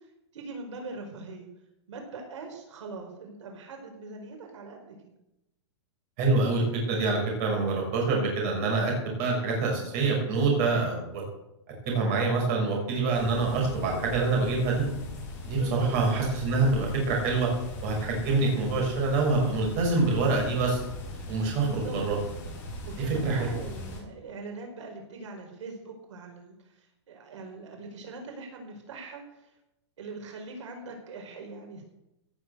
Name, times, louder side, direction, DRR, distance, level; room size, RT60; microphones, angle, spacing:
voice 1, 0.3-1.5 1.9-5.1 15.5-15.9 21.5-22.0 22.8-29.5 30.0-31.9, right 3 dB, 80° right, 2 dB, 4.9 m, -42 dB
voice 2, 6.2-11.2 11.9-14.8 15.4-17.5 17.8-20.8 21.3-22.2 23.1-23.6, right 3 dB, 35° right, 0 dB, 5.9 m, -26 dB
sound 1, 13.1-24.0, left 1 dB, 15° left, 5.1 m, -39 dB
17.0 x 8.0 x 8.2 m, 0.87 s
supercardioid pair, 175°, 15 cm